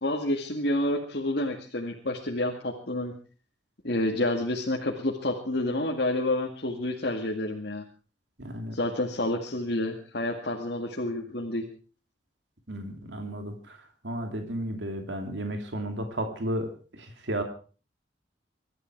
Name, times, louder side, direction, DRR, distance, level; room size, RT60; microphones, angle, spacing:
voice 1, 0.0-3.1 3.8-7.8 8.7-11.6, left 1 dB, 60° left, 0 dB, 2.2 m, -29 dB
voice 2, 8.4-8.8 12.7-17.4, right 1 dB, 75° right, 5 dB, 2.7 m, -33 dB
24.5 x 12.5 x 4.7 m, 0.39 s
head